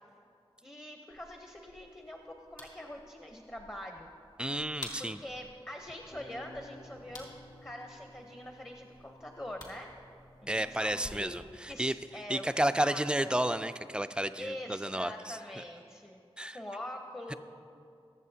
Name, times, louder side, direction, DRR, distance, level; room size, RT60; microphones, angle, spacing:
voice 1, 0.6-4.1 5.0-7.3 7.6-9.9 10.5-12.4 12.8-13.4 14.4-16.2 16.5-17.3, left 1 dB, 20° left, 3 dB, 0.9 m, -44 dB
sound 1, 1.1-11.1, left 1 dB, 50° left, 2.5 m, -52 dB
voice 2, 4.4-5.2 10.5-15.4 16.4-16.6 17.3-17.4, right 1 dB, 10° right, 11 dB, 0.4 m, -32 dB
sound 2, 5.9-11.8, left 1 dB, 85° left, 2.7 m, -56 dB
22.0 x 7.5 x 2.8 m, 2.4 s
wide cardioid pair, 40°, 10 cm